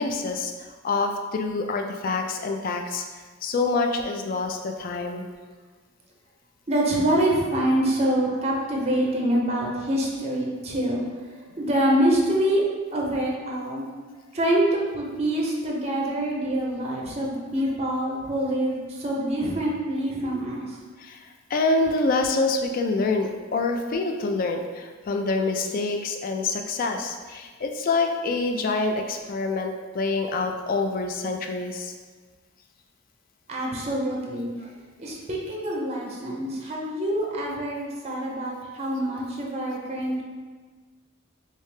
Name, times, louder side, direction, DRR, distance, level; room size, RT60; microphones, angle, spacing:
voice 1, 0.0-3.0 3.4-5.3 21.0-21.3 21.5-31.9, left 3 dB, 45° left, 4 dB, 0.3 m, -26 dB
voice 2, 6.7-11.0 11.3-12.6 12.9-13.9 14.3-20.8 33.5-34.7 35.0-40.2, right 1 dB, 30° right, -2 dB, 0.5 m, -25 dB
3.2 x 2.7 x 3.2 m, 1.4 s
head